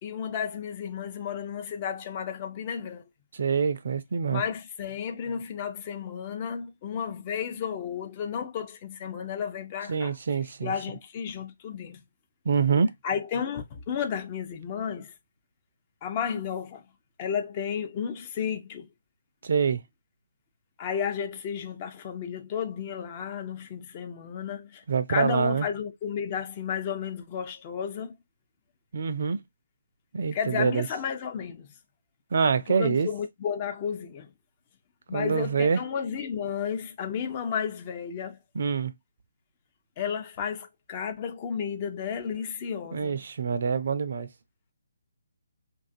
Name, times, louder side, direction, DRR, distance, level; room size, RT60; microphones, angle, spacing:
voice 1, 0.0-3.0 4.3-10.2 10.6-12.0 13.0-15.1 16.0-16.8 17.2-18.9 20.8-28.1 30.3-31.7 32.7-34.3 35.1-38.4 40.0-43.2, left 7 dB, 30° left, 0.5 m, -32 dB
voice 2, 3.4-4.4 9.9-10.7 12.5-12.9 19.4-19.8 24.9-25.7 28.9-29.4 30.1-30.9 32.3-33.1 35.1-35.8 38.6-38.9 42.9-44.3, right 6 dB, 50° right, 0.4 m, -25 dB
2.5 x 2.3 x 2.5 m
figure-of-eight pair, 140°, 0 cm